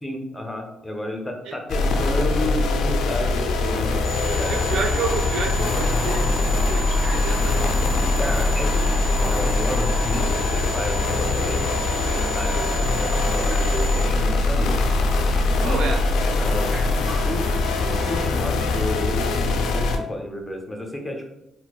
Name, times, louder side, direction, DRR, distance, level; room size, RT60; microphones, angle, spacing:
voice 1, 0.0-4.5 8.2-14.8 15.3-15.8 16.2-16.7 17.2-17.5 17.8-21.3, left 1 dB, 15° left, 2 dB, 0.6 m, -31 dB
sound 1, 1.7-20.0, left 3 dB, 80° left, 0.3 m, -22 dB
sound 2, 4.0-14.0, right 3 dB, 10° right, 1.1 m, -35 dB
voice 2, 4.5-7.7 15.6-16.0, right 4 dB, 75° right, 3 dB, 0.4 m, -29 dB
Raindrop, 5.6-18.2, equal, 40° right, 1.4 m, -37 dB
4.2 x 2.0 x 2.3 m, 0.86 s
cardioid pair, 90°, 0 cm